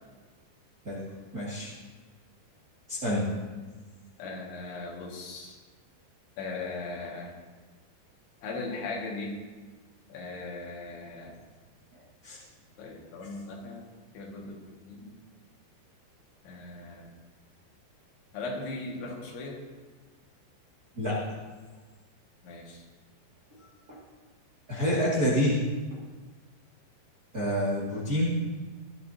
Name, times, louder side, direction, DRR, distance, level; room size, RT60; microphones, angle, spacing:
voice 1, 1.3-1.7 2.9-3.3 12.2-12.4 20.9-21.2 23.9-24.0 24.7-25.6 27.3-28.3, equal, 40° right, -6 dB, 1.3 m, -27 dB
voice 2, 4.2-5.6 6.4-7.3 8.4-9.3 10.1-11.3 12.8-13.9 14.1-14.6 14.9-15.2 16.4-17.1 18.3-19.6 22.4-22.8, left 3 dB, 85° left, -2 dB, 4.3 m, -38 dB
17.5 x 12.0 x 2.8 m, 1.3 s
omnidirectional pair, 5.2 m